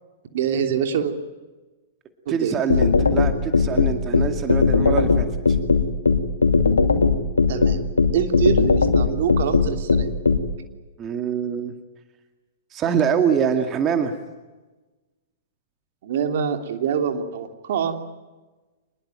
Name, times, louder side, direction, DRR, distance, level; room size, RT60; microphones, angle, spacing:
voice 1, 0.3-1.1 2.2-2.6 7.5-7.8 8.1-10.1 16.0-17.9, right 8 dB, 55° right, 6 dB, 3.0 m, -25 dB
voice 2, 2.3-5.3 11.0-11.7 12.7-14.2, right 7 dB, 25° right, 6 dB, 2.2 m, -24 dB
sound 1, 2.7-10.4, left 4 dB, 80° left, 2.6 m, -17 dB
26.0 x 21.0 x 9.1 m, 1.2 s
figure-of-eight pair, 110°, 0 cm